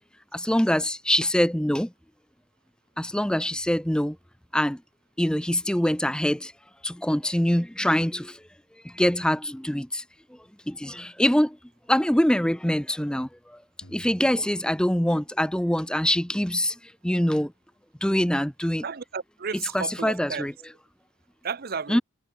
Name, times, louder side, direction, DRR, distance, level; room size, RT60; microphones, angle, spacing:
voice 1, 0.3-1.9 3.0-4.2 4.5-4.8 5.2-6.5 6.8-8.4 8.8-10.0 10.7-11.6 11.9-13.6 13.9-16.7 17.0-17.5 18.0-18.8 19.7-20.5 21.9-22.0, equal, 5° left, 0.6 m, -24 dB
sound 1, 13.8-16.0, equal, 60° left, 6.4 m, -53 dB
voice 2, 18.8-20.5 21.4-22.0, right 5 dB, 45° right, 0.6 m, -33 dB
head